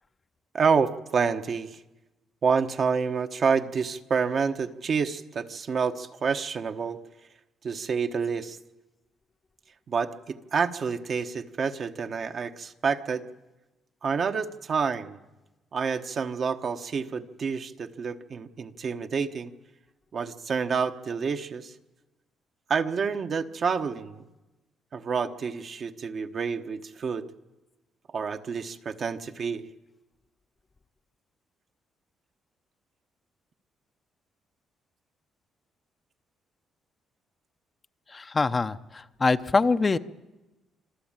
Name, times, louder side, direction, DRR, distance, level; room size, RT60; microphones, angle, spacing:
voice 1, 0.5-1.8 2.4-7.0 7.6-8.6 9.9-13.2 14.0-15.2 15.7-19.5 20.1-21.7 22.7-24.2 24.9-27.3 28.1-29.6, right 5 dB, 50° right, 6 dB, 1.1 m, -28 dB
voice 2, 38.1-40.0, left 4 dB, 30° left, 10 dB, 0.7 m, -24 dB
26.0 x 13.0 x 8.9 m, 1.1 s
cardioid pair, 90°, 0 cm